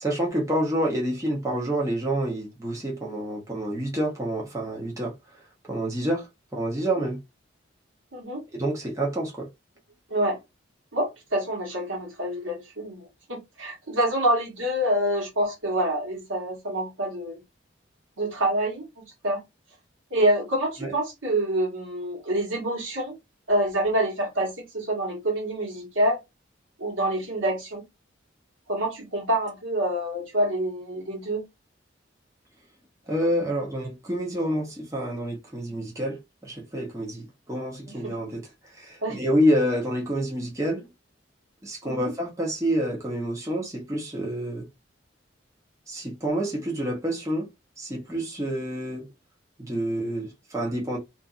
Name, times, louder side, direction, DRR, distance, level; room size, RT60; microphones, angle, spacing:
voice 1, 0.0-5.1 5.7-6.3 6.5-7.2 8.5-9.5 20.8-20.9 33.1-38.4 38.7-40.9 41.6-44.7 45.9-47.5 47.8-49.1 49.6-51.0, equal, 15° right, 0.8 m, -28 dB
voice 2, 8.1-8.4 10.1-10.4 10.9-17.4 18.2-19.4 20.1-23.2 23.5-26.2 26.8-27.8 28.7-31.5 37.9-38.1 39.0-39.2 41.8-42.1, right 1 dB, 90° right, 1.3 m, -27 dB
2.6 x 2.5 x 2.4 m
head